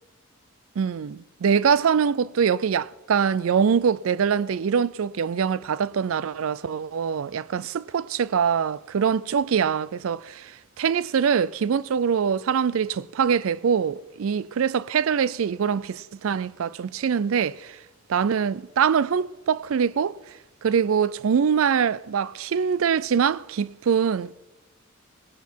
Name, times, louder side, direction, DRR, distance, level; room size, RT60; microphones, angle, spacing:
voice 1, 0.8-10.5 10.8-17.8 18.1-20.2 20.6-24.3, right 7 dB, 70° right, 0.4 m, -23 dB
18.0 x 12.5 x 4.6 m
head